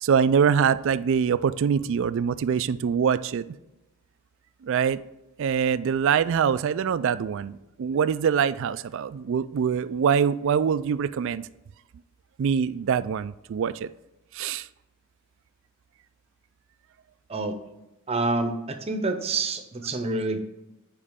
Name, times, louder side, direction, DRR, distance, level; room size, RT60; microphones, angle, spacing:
voice 1, 0.0-3.4 4.6-5.0 5.4-11.5 12.4-13.9 14.3-14.7, right 7 dB, 60° right, 15 dB, 0.3 m, -24 dB
voice 2, 18.1-20.4, right 3 dB, 25° right, 7 dB, 0.7 m, -27 dB
8.7 x 5.0 x 3.6 m, 0.97 s
head